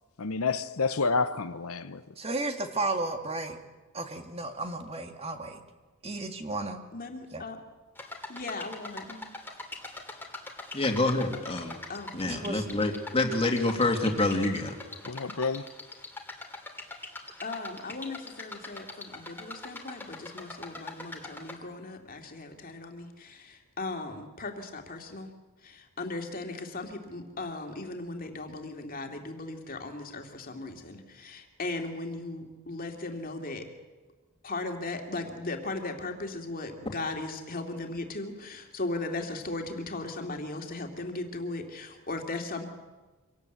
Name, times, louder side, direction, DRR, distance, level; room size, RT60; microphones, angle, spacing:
voice 1, 0.2-2.2 15.0-15.7, left 4 dB, 75° left, 0.9 m, -29 dB
voice 2, 2.2-3.6 3.9-5.6 6.0-6.8 7.3-7.4 12.2-12.6, right 2 dB, 25° right, 1.9 m, -33 dB
voice 3, 6.9-7.6 8.3-9.2 11.9-12.1 17.4-25.3 25.6-33.7 34.4-42.7, left 2 dB, 40° left, 2.6 m, -37 dB
sound 1, 8.0-21.6, left 2 dB, 10° left, 2.6 m, -43 dB
voice 4, 10.7-11.8 12.1-14.8, left 2 dB, 25° left, 2.5 m, -27 dB
25.5 x 18.0 x 8.1 m
head